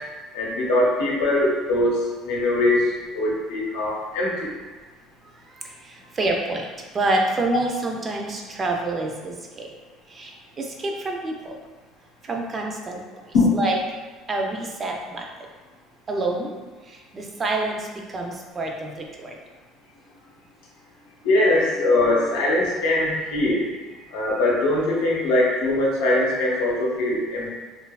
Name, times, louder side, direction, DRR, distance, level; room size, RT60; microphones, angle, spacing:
voice 1, 0.3-4.5 13.3-13.5 21.2-23.7 24.1-27.6, left 2 dB, 90° left, -4 dB, 0.7 m, -21 dB
voice 2, 5.6-6.6 6.9-9.7 10.1-11.5 12.2-13.0 13.5-13.8 14.3-15.3 16.1-16.6 16.9-19.3, right 2 dB, 25° right, 1 dB, 0.3 m, -27 dB
2.7 x 2.3 x 2.2 m, 1.3 s
cardioid pair, 140°, 0 cm